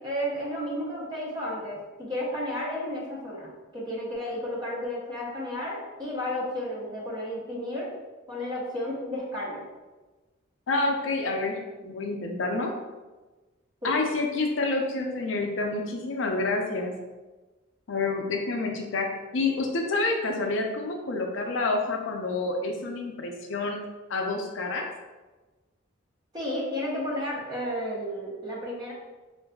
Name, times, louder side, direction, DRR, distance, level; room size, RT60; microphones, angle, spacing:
voice 1, 0.0-1.8 2.1-7.9 8.3-9.6 13.8-13.9 26.3-28.9, left 1 dB, 20° right, -5 dB, 0.9 m, -32 dB
voice 2, 10.7-12.7 13.8-16.9 17.9-19.1 19.3-23.8 24.1-24.9, left 3 dB, 70° left, 2 dB, 0.5 m, -28 dB
4.6 x 2.5 x 2.2 m, 1.2 s
head